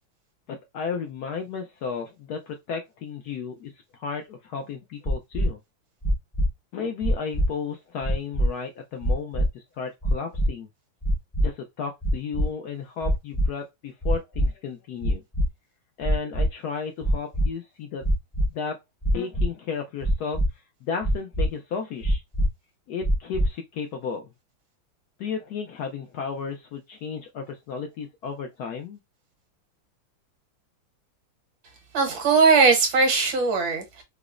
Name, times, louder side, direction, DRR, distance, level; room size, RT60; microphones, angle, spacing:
voice 1, 0.5-5.6 6.7-10.7 11.4-15.2 16.0-18.0 18.5-18.8 19.1-22.2 22.9-24.3 25.2-29.0, left 6 dB, 75° left, 0.9 m, -33 dB
sound 1, 5.1-5.5 6.0-6.5 7.0-7.5 8.0-8.5 9.0-9.5 10.0-10.5 11.0-11.5 12.0-12.5 13.0-13.5 14.0-14.5 15.0-15.5 16.0-16.5 17.0-17.5 18.0-18.5 19.0-19.5 20.0-20.5 21.0-21.5 22.0-22.5 23.0-23.5, equal, 25° left, 0.6 m, -22 dB
voice 2, 31.9-34.0, right 4 dB, 75° right, 1.8 m, -19 dB
4.9 x 2.0 x 2.4 m
omnidirectional pair, 2.1 m